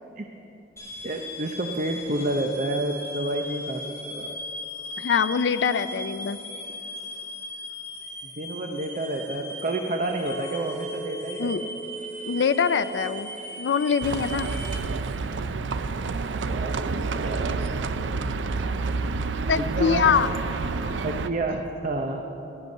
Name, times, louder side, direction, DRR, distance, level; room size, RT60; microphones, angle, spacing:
sound 1, 0.8-14.8, left 1 dB, 15° left, 2.3 m, -38 dB
voice 1, 1.0-4.3 8.2-11.8 16.4-18.0 19.6-20.1 21.0-22.2, right 2 dB, 45° right, 3 dB, 0.7 m, -30 dB
voice 2, 5.0-6.4 11.4-11.6 12.2-13.3 13.6-14.5 19.5-20.3 20.8-21.0, left 6 dB, 70° left, 12 dB, 0.4 m, -23 dB
Chink clink, 10.3-14.6 14.9-15.4, right 2 dB, 30° left, 2.0 m, -41 dB
Livestock farm animals working animals, 14.0-21.3, right 4 dB, 85° right, 0.5 m, -29 dB
13.5 x 12.0 x 5.4 m, 3.0 s
head